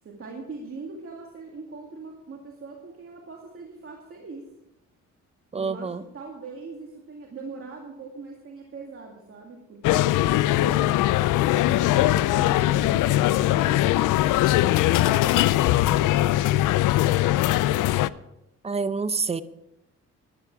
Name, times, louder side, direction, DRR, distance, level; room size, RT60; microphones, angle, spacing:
voice 1, 0.0-4.5 5.5-11.1 11.7-13.9 14.9-16.5, right 3 dB, 45° right, 0 dB, 2.3 m, -41 dB
voice 2, 5.5-6.0 18.6-19.4, right 4 dB, 20° right, 15 dB, 0.7 m, -27 dB
sound 1, 9.8-18.1, left 15 dB, 85° left, 0.5 m, -21 dB
14.0 x 11.0 x 4.7 m, 0.89 s
cardioid pair, 90°, 30 cm